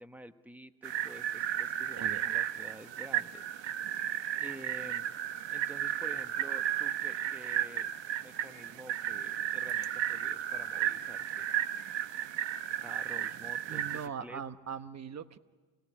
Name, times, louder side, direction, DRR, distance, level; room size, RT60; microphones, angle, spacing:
voice 1, 0.0-3.5 4.4-5.1 5.5-7.9 8.2-11.5 12.8-14.4, right 1 dB, 5° right, 10 dB, 1.0 m, -50 dB
sound 1, 0.8-14.1, right 11 dB, 60° right, 1.0 m, -34 dB
voice 2, 13.7-15.4, right 7 dB, 35° right, 12 dB, 1.0 m, -40 dB
27.0 x 18.0 x 10.0 m, 1.4 s
cardioid pair, 110°, 49 cm